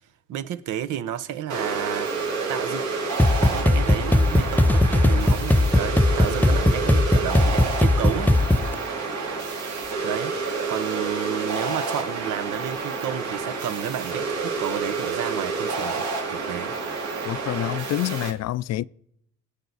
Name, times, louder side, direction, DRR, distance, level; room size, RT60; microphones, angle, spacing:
voice 1, 0.3-2.1 2.5-2.8 3.4-8.3 10.0-10.4 10.7-16.8, right 10 dB, 85° right, 0.8 m, -31 dB
sound 1, 1.5-18.3, right 4 dB, 70° right, 2.8 m, -29 dB
sound 2, 3.2-8.8, left 1 dB, 5° left, 0.5 m, -19 dB
voice 2, 17.2-18.8, left 14 dB, 60° left, 0.4 m, -27 dB
21.5 x 8.3 x 4.1 m
cardioid pair, 90°, 30 cm